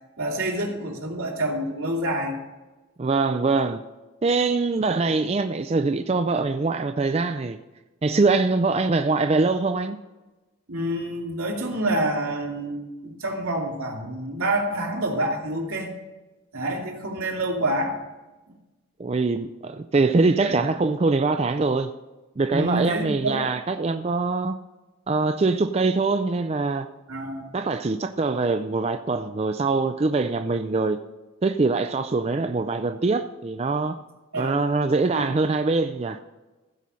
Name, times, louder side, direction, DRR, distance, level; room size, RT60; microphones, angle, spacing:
voice 1, 0.2-2.4 10.7-15.9 16.5-18.0 20.5-20.7 22.5-23.4 27.1-27.5 34.3-34.6 35.1-35.3, right 1 dB, 85° right, 2.6 m, -27 dB
voice 2, 3.0-3.8 4.2-7.6 8.0-10.0 19.0-21.9 22.4-24.6 25.1-26.9 27.5-31.0 31.4-34.0 34.3-36.2, right 3 dB, 30° right, 0.3 m, -23 dB
15.5 x 5.5 x 6.2 m
head